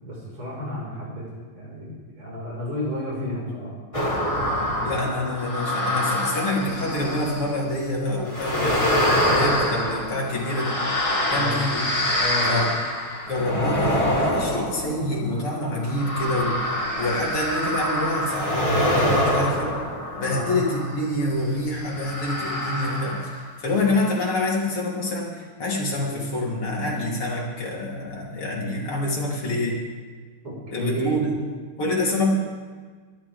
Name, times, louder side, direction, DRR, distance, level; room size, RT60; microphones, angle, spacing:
voice 1, 0.0-3.7 11.3-11.6 12.2-12.7 20.3-20.5 30.4-31.2, equal, 80° right, -5 dB, 5.9 m, -31 dB
sound 1, 3.9-7.6 8.3-21.1 21.9-23.5 23.8-23.9, left 1 dB, 15° left, 2.0 m, -25 dB
voice 2, 4.8-8.9 9.2-10.8 11.3-11.8 12.5-12.7 13.3-19.8 20.2-29.8 30.7-31.3 31.8-32.4, left 1 dB, 90° left, -4 dB, 4.0 m, -26 dB
22.5 x 12.5 x 3.5 m, 1.5 s
omnidirectional pair, 2.4 m